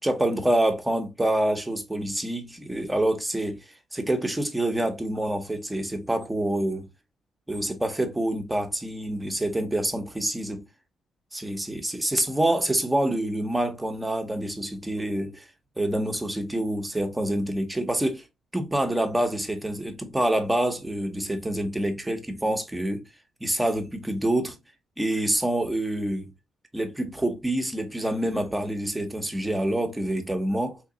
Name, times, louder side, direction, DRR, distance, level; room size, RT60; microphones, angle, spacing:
voice 1, 0.0-6.9 7.5-10.7 11.3-15.5 15.8-18.2 18.5-23.0 23.4-24.6 25.0-26.3 26.7-30.8, right 1 dB, 10° right, 0.8 m, -27 dB
3.8 x 2.9 x 2.7 m
cardioid pair, 100°, 0 cm